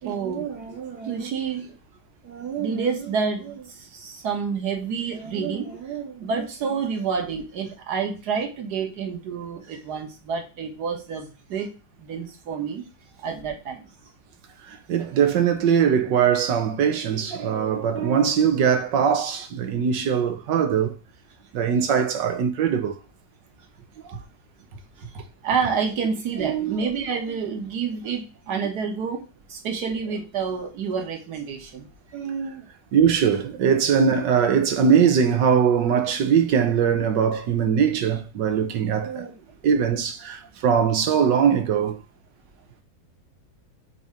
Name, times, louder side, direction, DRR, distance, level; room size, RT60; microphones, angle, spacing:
voice 1, 0.0-1.8 2.2-11.7 12.0-12.8 13.2-13.9 25.0-25.1 25.4-32.7 39.0-39.3, right 6 dB, 65° right, 1.8 m, -29 dB
voice 2, 14.7-20.9 21.5-23.0 24.1-24.2 26.4-26.8 32.9-39.3 39.6-42.0, right 7 dB, 85° right, 1.6 m, -21 dB
7.0 x 2.8 x 5.0 m
omnidirectional pair, 1.9 m